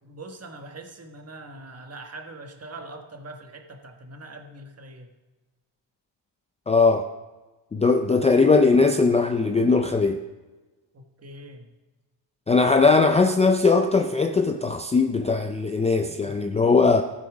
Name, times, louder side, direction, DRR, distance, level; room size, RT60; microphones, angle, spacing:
voice 1, 0.0-5.1 10.9-11.7 16.0-16.3, right 2 dB, 35° right, 4 dB, 1.5 m, -42 dB
voice 2, 6.7-7.1 7.7-10.2 12.5-17.0, left 4 dB, 15° left, 6 dB, 0.4 m, -19 dB
14.5 x 6.9 x 5.0 m, 1.2 s
cardioid pair, 110°, 44 cm